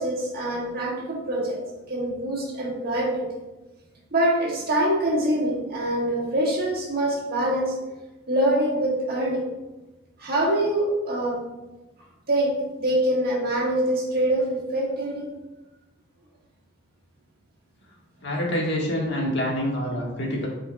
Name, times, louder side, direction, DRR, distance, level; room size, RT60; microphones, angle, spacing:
voice 1, 0.0-1.6 1.9-3.4 4.1-7.8 8.3-9.5 10.2-11.4 12.3-15.3, right 1 dB, 55° right, -2 dB, 1.5 m, -24 dB
voice 2, 18.2-20.5, equal, 65° left, -2 dB, 1.6 m, -26 dB
9.4 x 4.7 x 2.3 m, 1.1 s
head